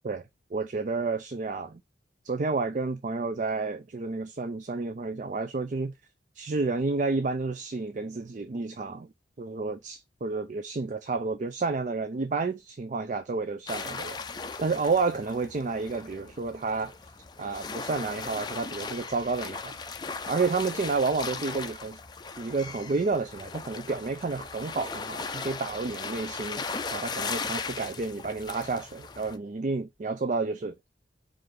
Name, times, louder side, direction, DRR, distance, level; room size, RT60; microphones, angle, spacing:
voice 1, 0.5-1.8 2.2-5.9 6.3-9.1 9.4-16.9 17.4-19.7 20.3-22.0 22.4-26.6 26.9-30.7, right 4 dB, 40° right, 0.4 m, -30 dB
sound 1, 13.7-29.4, left 4 dB, 20° left, 0.4 m, -38 dB
4.8 x 2.6 x 3.6 m
head